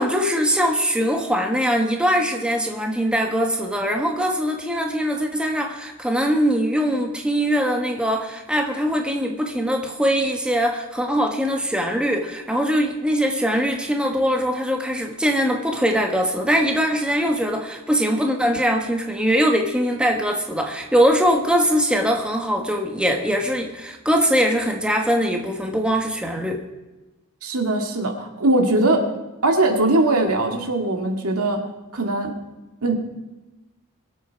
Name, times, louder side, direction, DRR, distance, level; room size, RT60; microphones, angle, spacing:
voice 1, 0.0-26.6, equal, 5° right, 2 dB, 1.3 m, -22 dB
voice 2, 27.4-29.1 29.4-31.6 31.9-32.3 32.8-33.0, right 2 dB, 75° right, 3 dB, 2.1 m, -20 dB
22.5 x 8.4 x 4.6 m, 1.1 s
head